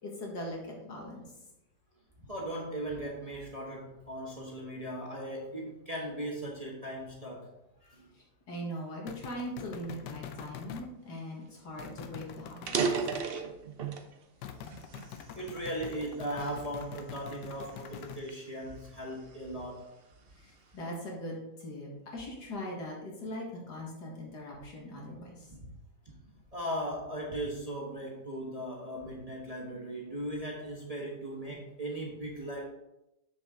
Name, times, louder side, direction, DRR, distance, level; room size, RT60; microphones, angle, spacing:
voice 1, 0.0-1.3 8.5-12.8 20.4-25.5, equal, 75° left, -2 dB, 2.3 m, -40 dB
voice 2, 2.2-7.5 7.8-8.1 14.5-14.7 15.1-19.9 26.0-26.1 26.5-32.6, right 1 dB, 25° right, -2 dB, 1.1 m, -38 dB
sound 1, 9.1-10.9 11.8-13.3 14.4-18.2, left 9 dB, 90° left, 1.3 m, -45 dB
sound 2, 11.5-11.6 11.9-12.0 12.5-14.1 14.7-15.9 16.5-16.8 17.4-19.5, right 5 dB, 55° right, 0.7 m, -34 dB
7.5 x 6.5 x 3.7 m, 0.89 s
omnidirectional pair, 1.8 m